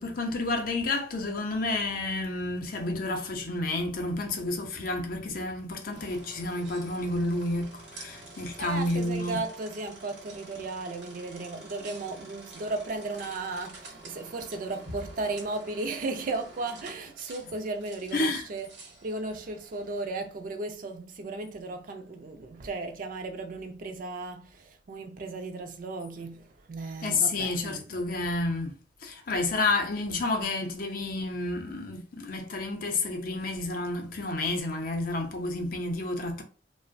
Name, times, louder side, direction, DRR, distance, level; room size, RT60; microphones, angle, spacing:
voice 1, 0.0-9.4 18.1-18.5 27.0-36.4, left 2 dB, 55° left, 0.6 m, -30 dB
sound 1, 5.9-20.3, right 2 dB, 70° right, 0.9 m, -48 dB
voice 2, 8.6-27.8, right 3 dB, 50° right, 0.4 m, -35 dB
2.8 x 2.1 x 2.5 m
head